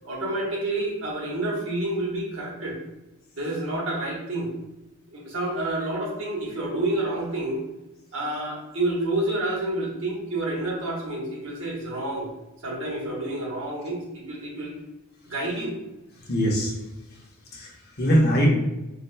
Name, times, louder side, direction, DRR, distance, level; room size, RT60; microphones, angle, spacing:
voice 1, 0.0-2.8 3.3-4.5 5.1-7.6 8.1-12.3 12.6-14.8 15.2-15.7, right 1 dB, 65° right, -3 dB, 1.3 m, -29 dB
voice 2, 16.2-16.8 17.1-17.2 17.5-18.5, equal, 50° left, -2 dB, 0.9 m, -23 dB
5.3 x 3.0 x 2.2 m, 0.98 s
head